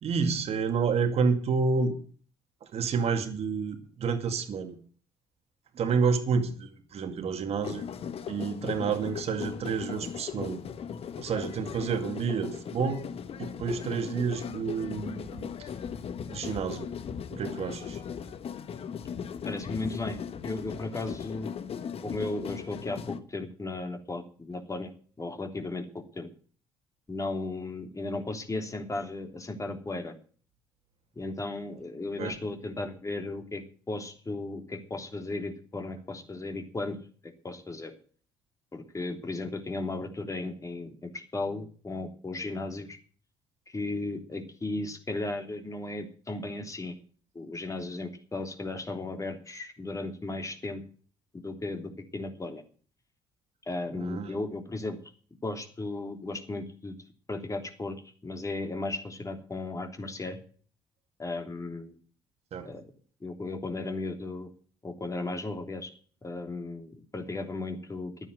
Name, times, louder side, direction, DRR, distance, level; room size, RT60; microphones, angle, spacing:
voice 1, 0.0-2.0 2.6-4.8 5.7-7.8 8.3-10.6 11.2-13.1 13.4-15.7 16.3-16.9 17.3-18.0 32.2-32.3 54.0-54.3 62.5-62.8, right 5 dB, 60° right, 2.3 m, -29 dB
sound 1, 7.6-23.2, left 7 dB, 55° left, 1.4 m, -38 dB
voice 2, 19.4-20.2 20.4-21.5 22.0-24.9 25.2-26.3 27.1-30.1 31.1-37.0 37.2-37.9 38.7-43.0 43.7-46.9 47.3-50.8 51.4-52.6 53.7-55.0 55.4-56.9 57.3-58.0 58.2-60.4 61.2-62.0 62.6-62.8 63.2-64.5 64.8-65.9 66.2-68.1, left 2 dB, 25° left, 3.2 m, -35 dB
11.0 x 9.4 x 7.9 m
hypercardioid pair, 55°, 12 cm